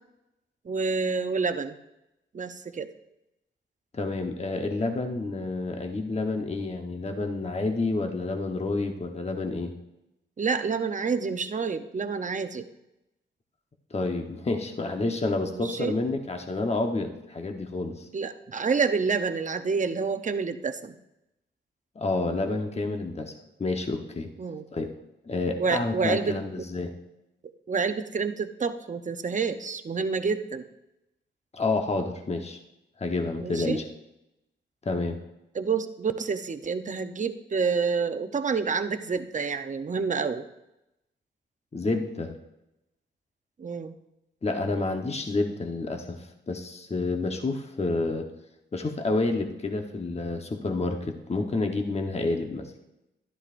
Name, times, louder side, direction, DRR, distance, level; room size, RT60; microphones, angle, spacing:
voice 1, 0.6-1.8 2.3-2.9 10.4-12.7 15.5-16.0 18.1-20.9 24.4-24.6 25.6-26.4 27.7-30.6 33.4-33.8 35.5-40.5 43.6-43.9, right 5 dB, 40° right, 9 dB, 0.7 m, -28 dB
voice 2, 3.9-9.7 13.9-18.1 21.9-23.3 23.6-24.3 24.7-24.9 25.2-26.9 31.5-32.6 33.0-33.8 34.8-35.2 41.7-42.3 44.4-48.3 48.7-52.7, left 3 dB, 35° left, 4 dB, 1.1 m, -29 dB
12.0 x 11.0 x 2.6 m, 0.90 s
cardioid pair, 70°, 20 cm